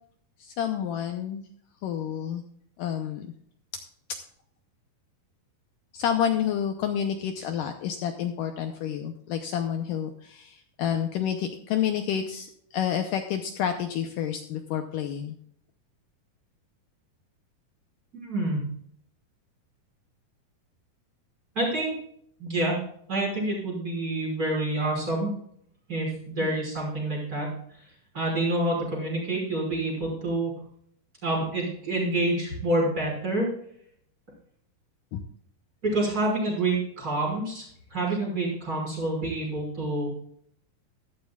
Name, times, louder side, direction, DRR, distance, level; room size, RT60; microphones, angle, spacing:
voice 1, 0.4-1.4 1.8-2.4 2.8-3.3 5.9-12.5 12.7-15.3 26.4-26.6 35.1-35.2, left 9 dB, 75° left, 6 dB, 2.2 m, -29 dB
voice 2, 18.1-18.6 21.5-21.9 22.4-22.8 23.1-25.3 25.9-27.5 28.1-30.5 31.2-33.5 35.8-37.6 37.9-40.1, right 2 dB, 20° right, -2 dB, 5.9 m, -27 dB
14.5 x 12.5 x 2.4 m, 0.66 s
omnidirectional pair, 4.3 m